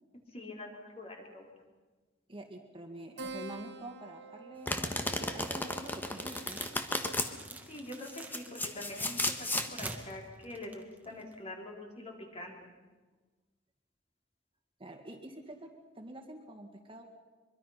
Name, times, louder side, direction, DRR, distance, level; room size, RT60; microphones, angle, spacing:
voice 1, 0.3-1.5 7.5-12.6, left 1 dB, 35° left, 0 dB, 4.1 m, -45 dB
voice 2, 2.3-6.7 14.8-15.7 16.0-17.0, right 1 dB, 30° right, 3 dB, 2.1 m, -47 dB
Keyboard (musical), 3.2-8.1, right 2 dB, 65° right, 2.2 m, -49 dB
Domestic sounds home sounds, 4.7-7.3 8.0-9.7, left 1 dB, 10° left, 1.4 m, -34 dB
sound 1, 5.3-11.4, right 2 dB, 10° right, 1.8 m, -48 dB
24.0 x 23.0 x 5.8 m, 1.3 s
head